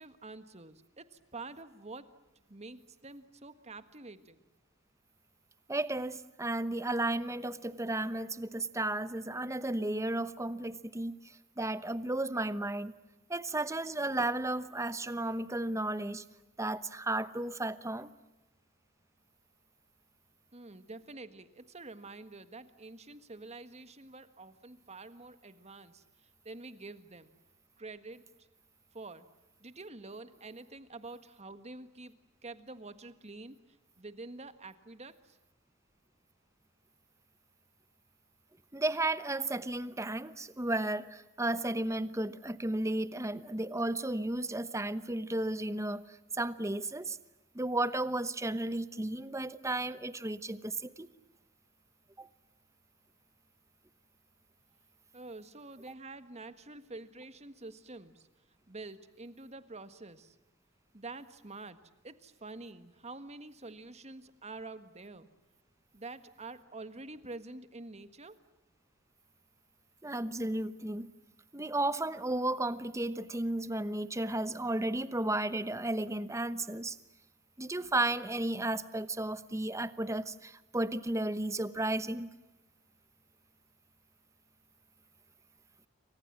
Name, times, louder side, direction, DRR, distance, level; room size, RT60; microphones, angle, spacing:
voice 1, 0.0-2.1 2.5-4.4 20.5-26.0 26.4-27.3 27.8-28.3 28.9-29.3 29.6-32.2 32.4-33.6 34.0-35.4 55.1-58.3 58.7-60.3 60.9-61.8 62.0-65.3 65.9-68.4, right 3 dB, 30° right, 11 dB, 1.6 m, -47 dB
voice 2, 5.7-12.9 13.3-16.2 16.6-18.1 38.7-47.2 47.5-51.1 52.2-52.3 70.0-71.1 71.5-77.0 77.6-82.3, right 2 dB, 15° right, 14 dB, 1.0 m, -33 dB
29.0 x 25.0 x 7.5 m, 1.0 s
head